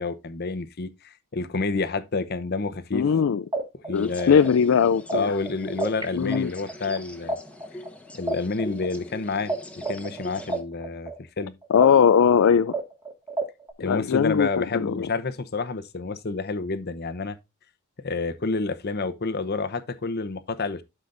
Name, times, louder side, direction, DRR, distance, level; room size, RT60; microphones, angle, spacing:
voice 1, 0.0-3.1 3.8-4.4 5.1-7.3 8.1-9.5 9.9-11.6 13.8-17.4 18.0-20.8, left 3 dB, 50° left, 0.8 m, -29 dB
voice 2, 2.9-3.4 3.9-5.3 6.1-6.5 11.7-12.7 13.8-15.1, left 7 dB, 65° left, 0.4 m, -20 dB
sound 1, 3.1-3.2 3.5-6.0 6.3-9.5 9.8-13.7, right 2 dB, 20° right, 1.8 m, -30 dB
sound 2, 3.9-10.6, left 1 dB, 5° left, 1.1 m, -43 dB
12.0 x 5.1 x 2.5 m
head